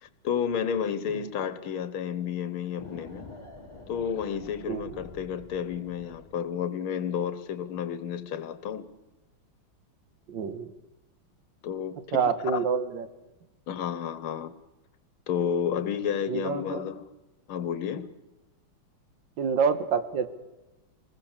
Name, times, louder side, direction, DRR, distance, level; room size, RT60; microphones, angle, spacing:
voice 1, 0.0-3.3 3.9-8.9 11.6-12.2 12.4-12.6 13.7-14.5 15.3-17.1 17.5-18.1, left 8 dB, 85° left, 1.9 m, -31 dB
sound 1, 2.8-6.5, left 2 dB, 15° left, 3.8 m, -47 dB
voice 2, 4.7-5.0 10.3-10.7 12.1-13.1 16.3-16.8 19.4-20.3, right 6 dB, 65° right, 1.9 m, -27 dB
25.5 x 20.5 x 7.3 m
omnidirectional pair, 2.3 m